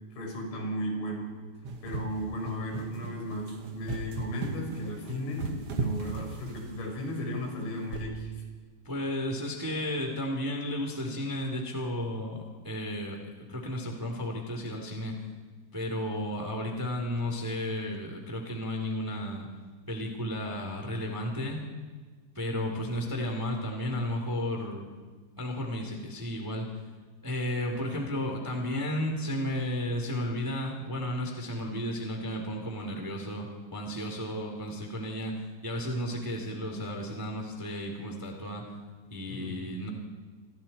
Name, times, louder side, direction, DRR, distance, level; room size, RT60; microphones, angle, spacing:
voice 1, 0.1-1.3 1.8-8.3 39.3-39.6, equal, 85° left, 1 dB, 7.5 m, -35 dB
sound 1, 1.6-7.0 7.9-8.2, right 4 dB, 75° right, 1.3 m, -36 dB
voice 2, 8.8-15.1 15.7-19.5 19.9-21.6 22.3-24.9 25.4-26.7 27.2-35.3 35.6-38.6 39.1-39.9, left 1 dB, 5° right, 2 dB, 2.3 m, -33 dB
28.0 x 26.5 x 4.5 m, 1.4 s
omnidirectional pair, 5.4 m